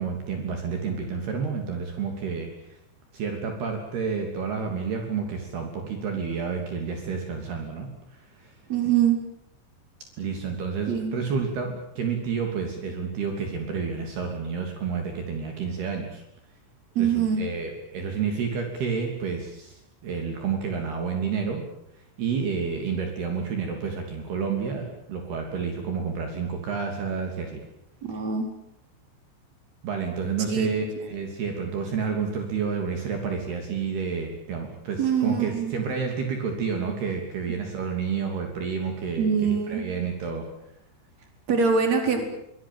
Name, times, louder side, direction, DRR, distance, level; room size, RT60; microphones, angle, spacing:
voice 1, 0.0-2.8 3.1-8.5 10.2-16.2 17.0-21.6 22.2-27.6 29.8-40.5, right 5 dB, 60° right, 4 dB, 4.9 m, -30 dB
voice 2, 8.7-9.2 10.9-11.2 17.0-17.4 28.0-28.5 30.5-30.7 35.0-35.8 39.2-39.9 41.5-42.2, right 6 dB, 40° right, 5 dB, 5.3 m, -23 dB
24.0 x 21.5 x 9.2 m, 0.80 s
omnidirectional pair, 5.3 m